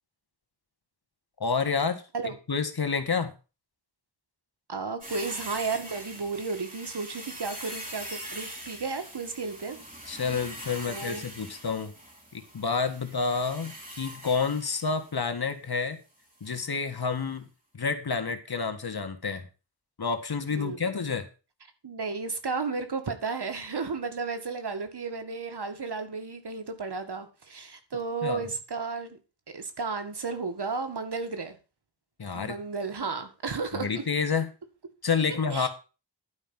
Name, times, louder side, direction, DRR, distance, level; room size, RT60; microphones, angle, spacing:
voice 1, 1.4-3.3 10.1-11.9 12.3-16.0 16.4-17.5 17.7-19.5 20.0-21.3 28.2-28.4 32.2-32.6 33.7-34.5 35.0-35.7, left 5 dB, 60° left, 7 dB, 1.8 m, -29 dB
voice 2, 4.7-9.8 10.9-11.2 20.5-21.0 21.8-29.2 29.5-31.6 32.3-34.0 35.5-35.7, right 4 dB, 70° right, 7 dB, 2.0 m, -33 dB
sound 1, 5.0-15.2 16.4-16.7 17.0-17.1, right 1 dB, 20° right, 4.1 m, -42 dB
11.5 x 5.2 x 7.6 m, 0.32 s
wide cardioid pair, 65°, 42 cm